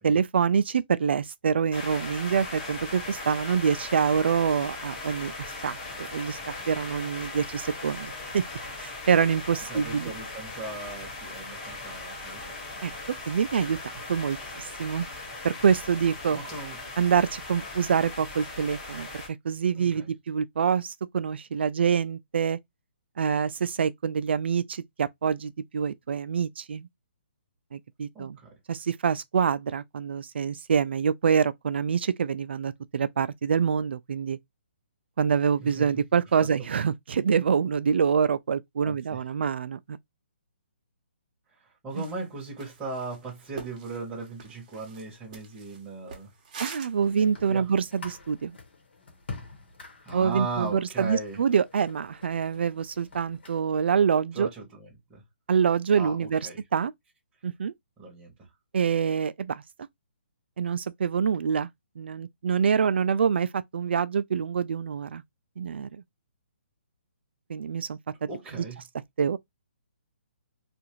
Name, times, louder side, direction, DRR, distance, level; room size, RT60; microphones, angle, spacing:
voice 1, 0.0-5.3 5.6-8.4 8.8-10.1 12.8-12.9 13.3-13.8 14.1-15.1 15.4-16.4 17.0-22.6 23.2-26.9 27.7-28.4 28.7-34.4 35.2-40.0 42.0-42.1 46.6-48.6 50.1-54.5 55.5-56.9 57.4-57.7 58.7-59.6 60.6-61.7 62.0-65.2 65.6-66.0 67.5-68.7 69.2-69.4, right 7 dB, 65° right, 0.3 m, -26 dB
sound 1, 1.7-19.3, left 2 dB, 30° left, 1.3 m, -39 dB
voice 2, 9.7-12.5 12.8-13.4 16.3-16.8 19.8-20.1 28.1-28.5 35.6-35.9 36.4-36.5 38.8-39.2 41.6-46.3 47.5-47.7 50.0-51.4 54.3-55.2 56.0-56.6 58.0-58.5 68.3-68.8, right 3 dB, 10° right, 1.0 m, -38 dB
sound 2, 41.9-42.2 42.6-47.1, right 5 dB, 40° right, 0.8 m, -44 dB
sound 3, 47.0-53.6, left 3 dB, 65° left, 1.2 m, -47 dB
2.5 x 2.4 x 2.9 m
hypercardioid pair, 160°, 6 cm